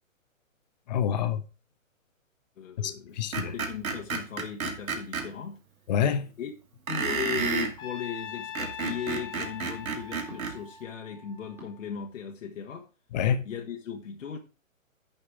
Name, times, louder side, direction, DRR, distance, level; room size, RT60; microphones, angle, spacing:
voice 1, 0.9-1.4 2.8-3.5 5.9-6.3 13.1-13.4, left 8 dB, 30° left, 0.9 m, -27 dB
voice 2, 2.6-5.6 6.4-6.5 6.9-12.9 13.4-14.4, left 8 dB, 65° left, 1.6 m, -37 dB
Screech, 3.3-5.3 6.9-7.7 8.4-10.6, right 5 dB, 85° right, 2.5 m, -31 dB
sound 1, 3.4-3.6 5.2-5.5 7.4-7.6 8.8-9.1 10.3-10.6 11.6-11.7, right 2 dB, 5° right, 2.1 m, -46 dB
Trumpet, 7.8-12.0, left 8 dB, 10° left, 1.1 m, -42 dB
10.5 x 5.4 x 4.9 m
hypercardioid pair, 150°, 41 cm